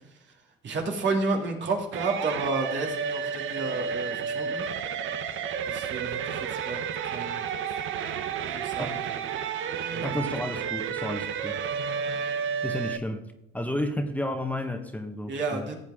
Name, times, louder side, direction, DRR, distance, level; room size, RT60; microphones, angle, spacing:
voice 1, 0.6-4.7 5.7-6.8 7.0-7.4 8.5-9.2 9.9-10.2 15.3-15.8, right 3 dB, 65° right, 1 dB, 2.7 m, -31 dB
sound 1, 1.9-13.0, right 7 dB, 80° right, 0.9 m, -31 dB
voice 2, 10.0-11.6 12.6-13.2 13.5-15.7, left 1 dB, 5° left, 5 dB, 1.3 m, -32 dB
15.5 x 8.0 x 3.7 m, 0.87 s
cardioid pair, 90°, 20 cm